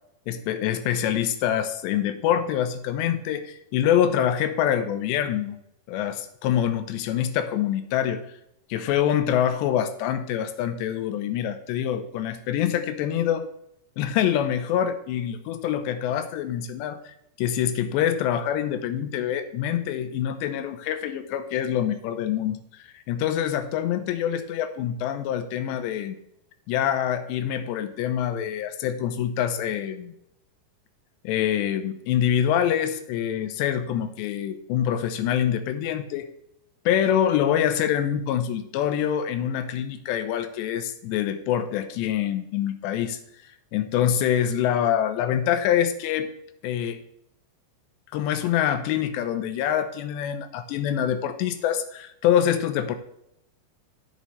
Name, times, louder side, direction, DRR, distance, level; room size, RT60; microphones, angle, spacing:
voice 1, 0.3-5.6 5.9-8.3 8.7-13.5 14.0-26.2 26.7-30.1 31.2-36.3 36.9-43.2 43.7-46.3 46.6-47.0 48.1-53.0, left 10 dB, 90° left, 9 dB, 2.9 m, -25 dB
16.5 x 5.6 x 3.2 m, 0.77 s
omnidirectional pair, 4.9 m